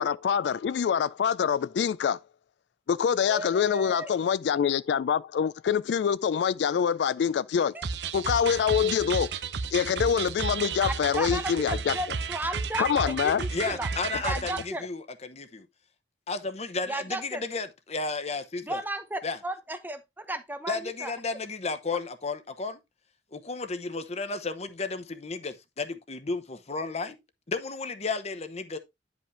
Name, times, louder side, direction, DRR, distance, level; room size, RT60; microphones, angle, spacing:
voice 1, 0.0-2.2 2.9-7.8 8.1-9.3 9.7-12.0 12.8-13.4, left 7 dB, 75° left, 0.3 m, -25 dB
voice 2, 3.3-4.1 7.7-7.8 11.1-11.6 11.9-13.9 14.2-14.8 16.9-17.4 18.6-21.1, right 1 dB, 10° right, 0.8 m, -34 dB
sound 1, 7.8-14.7, right 5 dB, 75° right, 0.7 m, -33 dB
voice 3, 13.5-15.7 16.3-18.8 19.2-19.4 20.7-22.8 23.3-27.2 27.5-28.8, left 3 dB, 40° left, 0.9 m, -33 dB
9.9 x 5.1 x 3.2 m
head